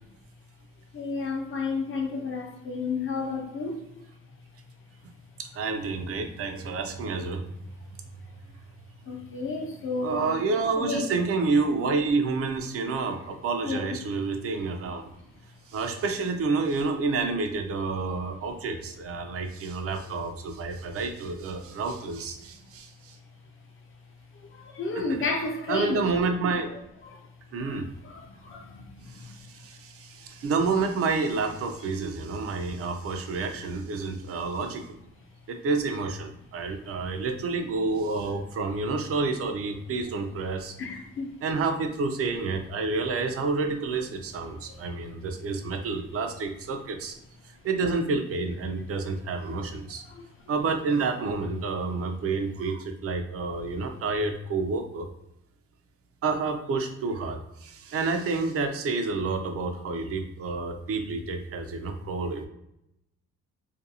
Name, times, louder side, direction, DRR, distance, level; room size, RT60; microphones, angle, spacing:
voice 1, 0.9-3.9 9.0-10.4 10.8-11.1 13.6-13.8 18.1-18.3 24.3-26.1 27.0-27.3 27.6-29.4 40.8-41.3 44.7-44.8 50.1-50.2, left 3 dB, 45° left, 0.7 m, -32 dB
voice 2, 5.4-7.5 10.0-15.1 15.7-23.2 25.7-26.7 27.5-27.9 29.1-34.8 35.5-40.7 41.4-47.2 47.6-50.0 50.5-55.1 56.2-62.5, right 4 dB, 50° right, 0.5 m, -29 dB
2.5 x 2.2 x 2.8 m
cardioid pair, 90°, 30 cm